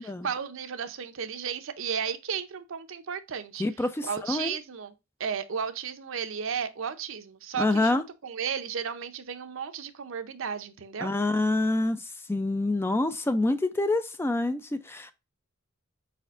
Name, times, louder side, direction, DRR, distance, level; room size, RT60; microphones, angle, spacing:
voice 1, 0.0-3.6 4.0-4.9 5.2-11.1, right 7 dB, 65° right, 0.6 m, -34 dB
voice 2, 3.6-4.6 7.6-8.0 11.0-15.1, left 2 dB, 10° left, 0.3 m, -27 dB
4.9 x 4.2 x 2.5 m
head